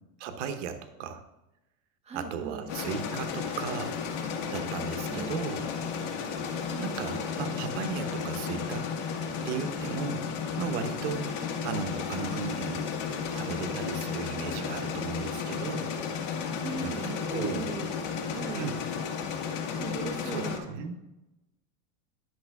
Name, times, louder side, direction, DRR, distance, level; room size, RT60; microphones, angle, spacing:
voice 1, 0.2-1.2 2.1-4.0 4.5-5.7 6.8-8.9 9.4-10.3 10.6-11.4 11.6-12.9 13.3-16.0 16.8-17.7 18.5-18.8 20.2-20.9, right 6 dB, 80° right, 8 dB, 1.0 m, -35 dB
voice 2, 2.0-2.7 5.1-5.3 6.7-7.2 11.4-11.5 16.5-17.9 18.3-18.7 19.8-20.6, right 4 dB, 15° right, 1 dB, 1.2 m, -38 dB
sound 1, 2.7-20.6, left 6 dB, 90° left, 1.6 m, -33 dB
10.5 x 6.2 x 3.6 m, 0.94 s
supercardioid pair, 145°, 35 cm